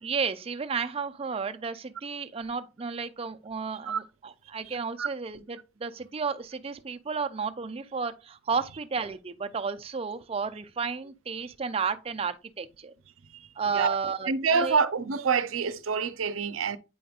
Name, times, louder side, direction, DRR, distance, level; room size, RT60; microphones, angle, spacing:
voice 1, 0.0-12.9 13.6-14.8, right 5 dB, 30° right, 0.4 m, -32 dB
voice 2, 4.7-5.1 13.3-13.5 13.7-14.0 14.3-16.8, right 5 dB, 90° right, 0.6 m, -27 dB
8.5 x 5.1 x 2.4 m
head